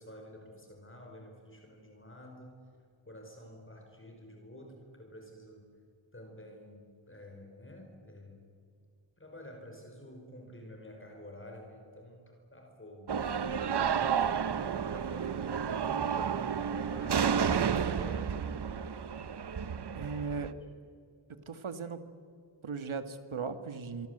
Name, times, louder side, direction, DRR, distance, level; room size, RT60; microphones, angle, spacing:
voice 1, 0.0-2.7 3.0-5.7 6.1-8.4 9.2-13.4 13.8-15.3 15.6-18.7 19.9-20.6, equal, 25° left, 2 dB, 4.8 m, -50 dB
sound 1, 13.1-20.5, right 7 dB, 55° right, 1.0 m, -31 dB
voice 2, 20.0-20.5 21.3-22.0 22.6-24.1, right 5 dB, 75° right, 10 dB, 2.0 m, -37 dB
26.5 x 23.5 x 8.0 m, 2.3 s
wide cardioid pair, 85°, 49 cm